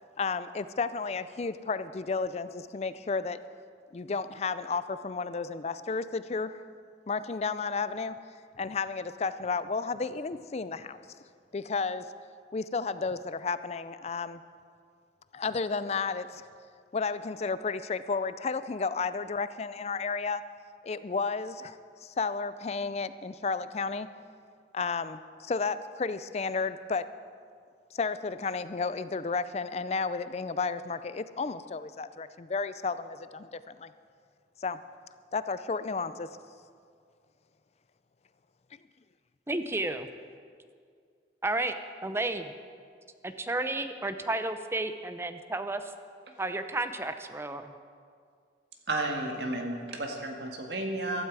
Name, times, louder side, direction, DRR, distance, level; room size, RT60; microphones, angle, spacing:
voice 1, 0.2-3.4 3.9-6.6 7.1-8.1 8.6-11.0 11.5-12.0 12.5-14.4 15.3-16.5 16.9-20.4 20.8-24.1 24.7-27.0 27.9-33.9 34.6-34.8 35.3-36.3, left 4 dB, 35° left, 14 dB, 0.4 m, -32 dB
voice 2, 39.5-40.1 41.4-41.8 42.0-42.5 43.2-45.8 46.4-47.7, right 2 dB, 15° right, 9 dB, 0.5 m, -32 dB
voice 3, 48.9-51.2, right 2 dB, 70° right, 2 dB, 1.9 m, -32 dB
15.0 x 13.0 x 4.8 m, 2.2 s
head